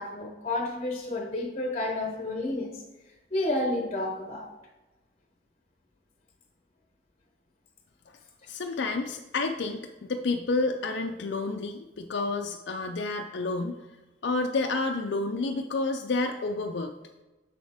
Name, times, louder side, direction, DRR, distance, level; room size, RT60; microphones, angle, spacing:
voice 1, 0.0-2.8 3.3-4.5, left 2 dB, 30° left, 0.7 m, -30 dB
voice 2, 8.5-13.8 14.2-16.9, left 3 dB, 60° left, 0.4 m, -30 dB
6.8 x 6.3 x 3.4 m
head